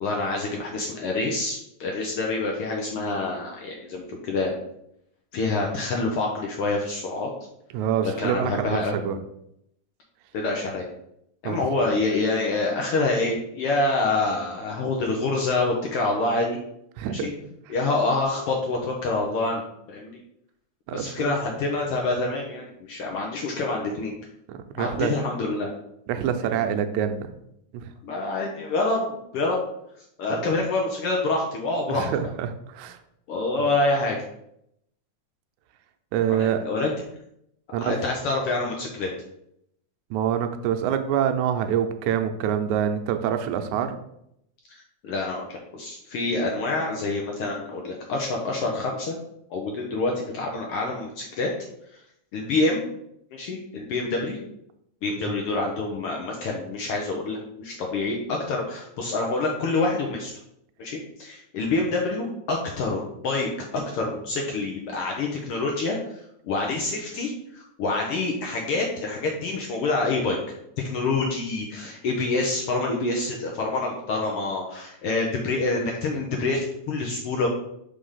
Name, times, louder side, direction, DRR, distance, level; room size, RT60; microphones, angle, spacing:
voice 1, 0.0-4.5 5.3-7.3 8.0-8.9 10.3-10.8 11.4-16.6 17.1-17.3 17.7-19.6 19.9-20.2 20.9-24.1 24.8-25.7 26.4-26.6 28.0-29.6 30.2-32.1 33.3-34.2 36.3-36.9 37.8-39.1 45.0-49.2 49.5-51.5 52.3-52.9 53.3-54.4 55.0-60.3 60.8-70.4 70.8-77.5, left 3 dB, 80° left, 0 dB, 1.3 m, -27 dB
voice 2, 7.7-9.2 11.4-11.9 17.0-17.3 20.9-21.3 24.5-25.1 26.1-27.3 27.7-27.9 30.3-30.5 31.9-33.0 36.1-36.6 37.7-38.0 40.1-44.0 55.2-55.4, right 9 dB, 80° right, 8 dB, 1.9 m, -26 dB
5.0 x 3.4 x 5.5 m, 0.77 s
omnidirectional pair, 3.4 m